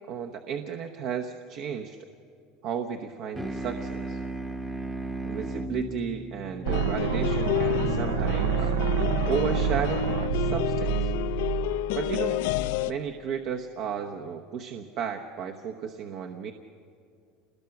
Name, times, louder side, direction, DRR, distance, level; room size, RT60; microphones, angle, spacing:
voice 1, 0.1-2.0 2.6-4.2 5.2-8.7 9.3-11.1 11.9-12.4 12.8-16.5, right 7 dB, 55° right, 4 dB, 1.0 m, -33 dB
sound 1, 3.3-8.2, right 2 dB, 5° right, 0.9 m, -36 dB
sound 2, 6.6-12.9, left 10 dB, 80° left, 0.6 m, -30 dB
sound 3, 6.7-12.6, right 7 dB, 80° right, 0.7 m, -28 dB
28.0 x 20.5 x 6.0 m, 2.4 s
supercardioid pair, 135°, 0 cm